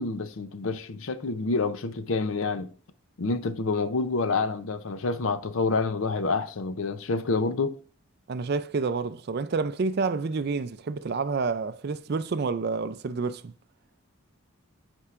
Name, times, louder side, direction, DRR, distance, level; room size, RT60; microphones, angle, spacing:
voice 1, 0.0-2.7 3.2-7.8, left 3 dB, 65° left, 0.6 m, -28 dB
voice 2, 8.3-13.5, right 4 dB, 50° right, 0.4 m, -29 dB
8.6 x 4.6 x 2.4 m
head